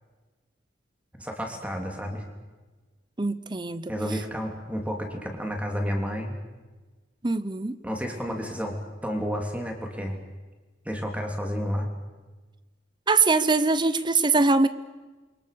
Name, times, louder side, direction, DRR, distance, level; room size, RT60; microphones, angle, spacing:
voice 1, 1.2-2.2 3.9-6.3 7.8-10.2 10.8-11.9, equal, 10° right, 2 dB, 3.4 m, -31 dB
voice 2, 3.2-3.9 7.2-7.8 13.1-14.7, right 3 dB, 25° right, 15 dB, 0.8 m, -22 dB
28.0 x 23.5 x 6.9 m, 1.3 s
head